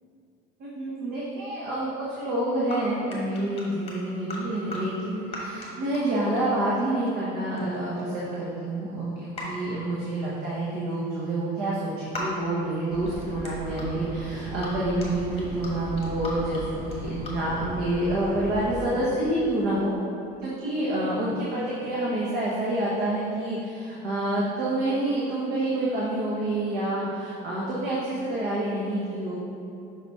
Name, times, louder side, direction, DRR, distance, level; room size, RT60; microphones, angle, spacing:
voice 1, 0.6-19.9 20.4-29.3, right 1 dB, 55° right, -6 dB, 1.1 m, -28 dB
sound 1, 2.7-2.8 3.1-4.4 4.7-4.8 5.3-5.7 5.9-6.7 7.1-7.3 7.6-8.6 9.3-9.4 10.2-10.4 12.1-12.3 12.8-13.9 14.6-14.7 15.0-15.7 16.0-16.6 16.9-17.3, left 3 dB, 30° left, 1.4 m, -38 dB
sound 2, 12.9-18.8, equal, 30° right, 1.4 m, -38 dB
5.9 x 4.0 x 4.7 m, 2.7 s
cardioid pair, 145°, 20 cm